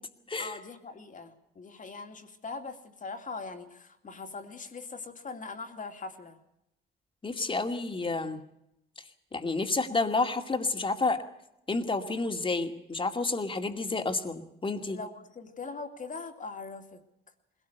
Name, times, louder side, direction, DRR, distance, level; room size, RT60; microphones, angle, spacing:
voice 1, 0.4-6.4 14.9-17.0, left 4 dB, 40° left, 5 dB, 2.6 m, -41 dB
voice 2, 7.2-8.4 9.3-11.2 11.7-15.0, left 3 dB, 25° left, 6 dB, 2.4 m, -30 dB
21.0 x 17.5 x 8.1 m, 0.82 s
cardioid pair, 90°, 20 cm